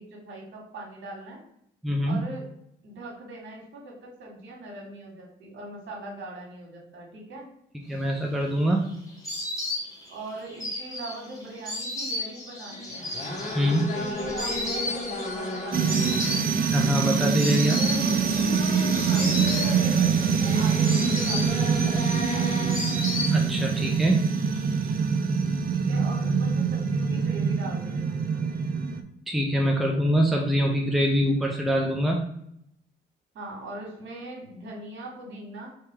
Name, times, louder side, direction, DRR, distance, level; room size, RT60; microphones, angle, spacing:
voice 1, 0.0-1.4 2.1-2.5 2.8-7.5 10.1-13.1 13.6-16.3 17.4-18.0 19.0-22.7 25.7-28.5 33.3-35.7, right 2 dB, 70° right, -1 dB, 1.8 m, -41 dB
voice 2, 1.8-2.2 7.9-8.9 13.5-13.9 16.7-17.8 23.3-24.4 29.3-32.3, equal, ahead, 0 dB, 0.6 m, -24 dB
Insect, 8.1-23.8 24.1-24.9, left 2 dB, 15° left, 1.7 m, -35 dB
sound 1, 12.7-24.6, left 1 dB, 35° left, 1.1 m, -35 dB
sound 2, 15.7-29.0, right 6 dB, 50° right, 0.5 m, -24 dB
3.4 x 3.0 x 4.5 m, 0.73 s
cardioid pair, 90°, 20 cm